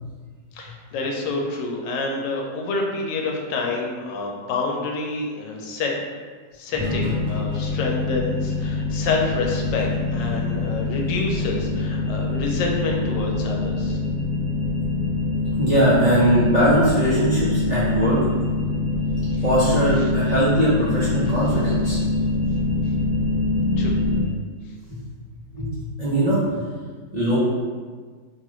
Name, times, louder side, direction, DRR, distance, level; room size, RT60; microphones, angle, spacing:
voice 1, 0.5-5.9 6.5-14.0 19.3-19.4 23.8-23.9, left 3 dB, 90° left, 0 dB, 1.2 m, -28 dB
sound 1, 6.8-24.2, left 3 dB, 50° left, 1.2 m, -24 dB
voice 2, 15.6-18.2 19.4-22.0 24.9-25.0 25.5-25.7 26.0-26.4 27.1-27.4, right 1 dB, 70° right, -11 dB, 0.4 m, -20 dB
3.1 x 2.3 x 3.0 m, 1.5 s
omnidirectional pair, 1.9 m